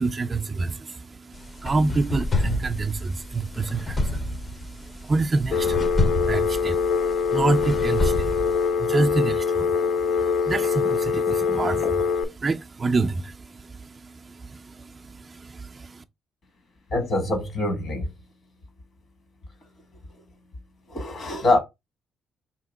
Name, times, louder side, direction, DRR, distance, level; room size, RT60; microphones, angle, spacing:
voice 1, 0.0-16.0, right 3 dB, 35° right, 0.3 m, -28 dB
sound 1, 1.3-8.7, left 2 dB, 30° left, 0.6 m, -29 dB
Telephone, 5.5-12.2, left 6 dB, 75° left, 0.3 m, -23 dB
voice 2, 16.9-18.0 20.9-21.6, left 2 dB, 55° left, 1.3 m, -24 dB
3.0 x 2.8 x 3.9 m
cardioid pair, 90°, 0 cm